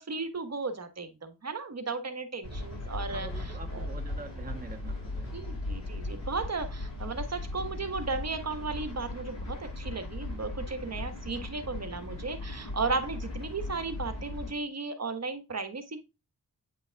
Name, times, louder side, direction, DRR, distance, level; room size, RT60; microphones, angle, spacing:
voice 1, 0.0-3.9 5.3-16.0, right 4 dB, 45° right, 1.2 m, -35 dB
sound 1, 2.4-14.5, left 2 dB, 50° left, 4.3 m, -38 dB
voice 2, 3.0-5.4, right 4 dB, 25° right, 1.0 m, -45 dB
9.0 x 5.2 x 2.3 m
cardioid pair, 65°, 36 cm